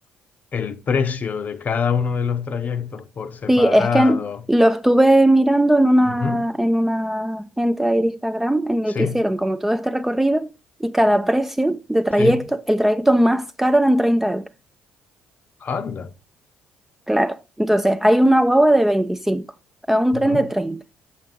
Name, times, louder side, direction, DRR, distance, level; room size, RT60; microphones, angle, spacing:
voice 1, 0.5-4.4 6.1-6.5 8.9-9.2 12.2-12.4 15.6-16.1 20.1-20.5, left 6 dB, 40° left, 0.6 m, -25 dB
voice 2, 3.5-4.2 4.5-10.5 10.8-14.5 17.1-19.5 19.9-20.8, right 1 dB, 5° right, 0.4 m, -18 dB
7.2 x 6.3 x 3.7 m
figure-of-eight pair, 50°, 4 cm